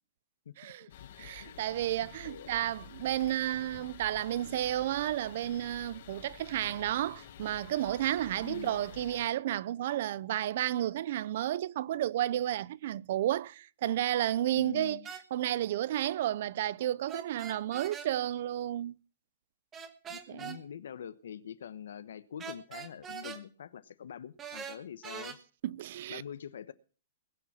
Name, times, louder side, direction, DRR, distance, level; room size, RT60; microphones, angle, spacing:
voice 1, 0.6-0.9 1.2-15.0 15.3-19.0 20.3-20.6 25.6-26.2, right 12 dB, 45° right, 0.5 m, -32 dB
sound 1, 0.9-9.3, left 9 dB, 50° left, 1.6 m, -50 dB
voice 2, 1.2-1.6 2.2-2.5 8.4-8.8 14.5-15.1 20.1-25.4 26.1-26.7, left 8 dB, 75° left, 1.0 m, -45 dB
sound 2, 15.0-15.2 17.1-18.1 19.7-20.6 22.4-23.4 24.4-25.4, right 6 dB, 15° right, 1.3 m, -42 dB
20.5 x 6.9 x 6.0 m
hypercardioid pair, 170°, 0 cm